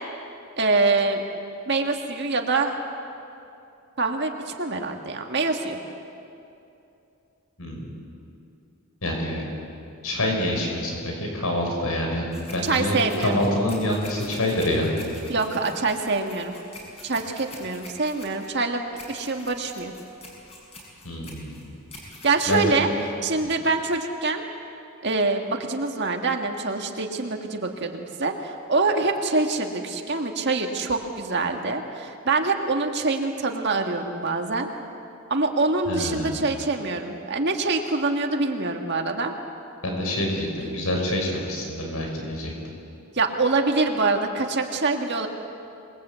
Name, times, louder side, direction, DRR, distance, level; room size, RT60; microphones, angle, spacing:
voice 1, 0.6-1.2 1.7-2.8 4.0-5.8 12.6-13.4 15.3-16.6 17.0-19.9 22.2-22.9 23.2-24.4 25.0-34.7 35.3-39.3 43.1-45.3, right 3 dB, 50° right, 3 dB, 1.8 m, -25 dB
voice 2, 9.0-9.4 10.0-14.9 21.0-21.7 22.5-22.8 35.9-36.4 39.8-42.5, left 1 dB, 80° left, 1 dB, 5.7 m, -26 dB
sound 1, 12.3-23.4, left 1 dB, 25° left, 6.7 m, -45 dB
27.0 x 21.0 x 8.3 m, 2.7 s
head